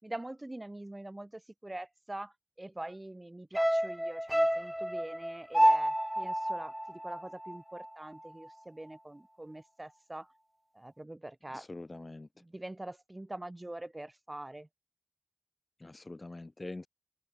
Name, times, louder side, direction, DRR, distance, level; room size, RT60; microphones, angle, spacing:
voice 1, 0.0-10.3 10.7-11.7 12.4-14.7, right 1 dB, 30° right, 6.0 m, -44 dB
sound 1, 3.6-8.0 8.2-8.3, equal, 5° right, 0.9 m, -29 dB
voice 2, 11.5-12.3 15.8-16.9, left 2 dB, 50° left, 0.7 m, -44 dB
open air
wide cardioid pair, 70°, 0 cm